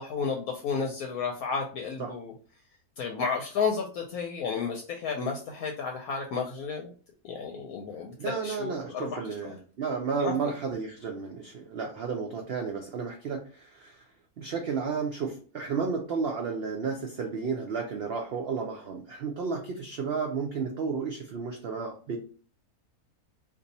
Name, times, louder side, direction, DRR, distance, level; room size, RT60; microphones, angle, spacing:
voice 1, 0.0-2.3 3.0-6.9 7.2-9.2 10.2-10.5, left 5 dB, 70° left, 2 dB, 1.0 m, -32 dB
voice 2, 8.2-14.0 14.4-22.2, right 5 dB, 85° right, 2 dB, 0.5 m, -32 dB
2.7 x 2.6 x 4.0 m, 0.40 s
omnidirectional pair, 1.7 m